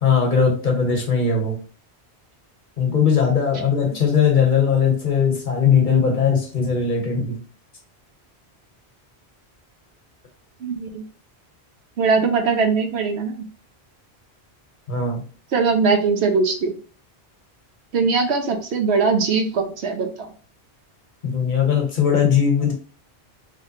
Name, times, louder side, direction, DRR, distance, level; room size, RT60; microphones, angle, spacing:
voice 1, 0.0-1.6 2.8-7.4 14.9-15.2 21.2-22.7, left 6 dB, 50° left, 1 dB, 1.1 m, -19 dB
voice 2, 10.6-11.0 12.0-13.4 15.5-16.7 17.9-20.3, right 4 dB, 75° right, 4 dB, 1.0 m, -21 dB
3.1 x 3.1 x 2.8 m, 0.38 s
omnidirectional pair, 1.1 m